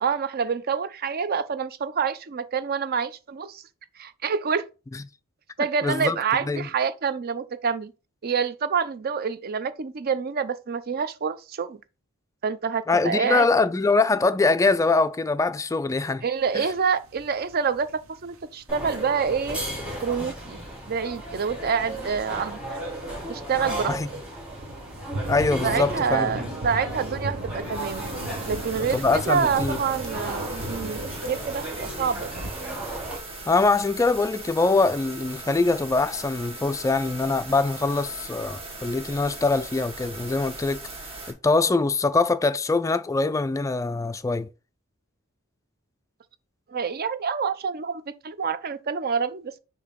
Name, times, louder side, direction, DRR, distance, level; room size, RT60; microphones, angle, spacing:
voice 1, 0.0-3.6 4.0-4.6 5.6-7.9 8.2-11.8 12.4-13.5 16.2-17.9 18.2-19.6 20.0-20.6 20.9-22.8 23.3-23.9 25.6-28.1 28.5-31.0 31.3-32.3 46.7-49.6, right 6 dB, 45° right, 0.5 m, -27 dB
voice 2, 5.8-6.7 12.9-16.2 16.5-16.6 23.9-24.1 25.3-26.5 28.9-29.8 33.5-40.9 41.3-44.5, left 3 dB, 15° left, 0.3 m, -23 dB
sound 1, 16.4-32.5, right 1 dB, 70° right, 0.9 m, -39 dB
sound 2, 18.7-33.2, right 1 dB, 5° right, 2.6 m, -35 dB
sound 3, 27.6-41.3, right 2 dB, 30° right, 1.7 m, -39 dB
6.7 x 2.8 x 5.2 m
head